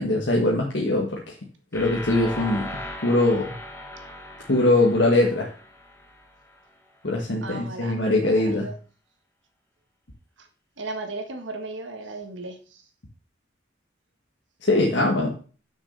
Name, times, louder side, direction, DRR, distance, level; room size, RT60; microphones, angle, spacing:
voice 1, 0.0-1.3 1.7-2.7 3.0-3.5 4.5-5.5 7.0-8.7 14.6-15.3, left 2 dB, 70° left, -1 dB, 1.6 m, -22 dB
sound 1, 1.7-6.6, left 1 dB, 15° left, 1.4 m, -38 dB
voice 2, 7.4-8.7 10.4-10.5 10.8-12.8, right 3 dB, 85° right, 5 dB, 1.7 m, -36 dB
6.5 x 6.3 x 6.8 m, 0.38 s
head